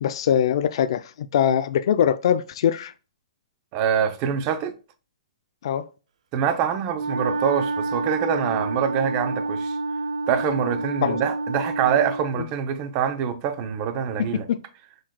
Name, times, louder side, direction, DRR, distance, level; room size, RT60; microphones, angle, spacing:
voice 1, 0.0-2.9 5.6-5.8 11.0-11.2 14.2-14.6, left 9 dB, 55° left, 0.4 m, -22 dB
voice 2, 3.7-4.7 6.3-9.8 10.3-14.5, right 8 dB, 30° right, 0.6 m, -25 dB
Wind instrument woodwind instrument, 6.9-12.3, right 2 dB, 85° right, 0.4 m, -28 dB
6.2 x 3.9 x 2.2 m
hypercardioid pair, 160°, 3 cm